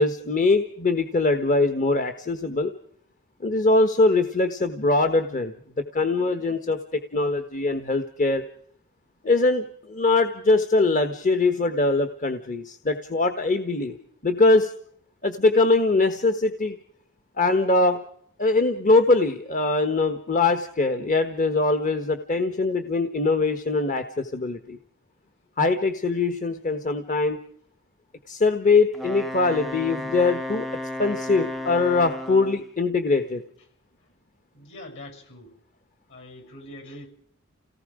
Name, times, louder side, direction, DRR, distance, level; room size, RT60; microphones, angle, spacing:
voice 1, 0.0-2.7 3.4-5.5 5.9-8.4 9.2-14.0 14.2-14.7 15.2-16.8 17.4-18.0 18.4-24.8 25.6-27.4 28.3-30.7 31.0-33.4, left 3 dB, 40° left, 8 dB, 1.3 m, -22 dB
Wind instrument woodwind instrument, 28.9-32.7, left 1 dB, ahead, 0.8 m, -33 dB
voice 2, 34.5-35.5 36.1-37.1, left 1 dB, 60° left, 5 dB, 7.2 m, -43 dB
29.5 x 18.5 x 5.0 m, 0.64 s
head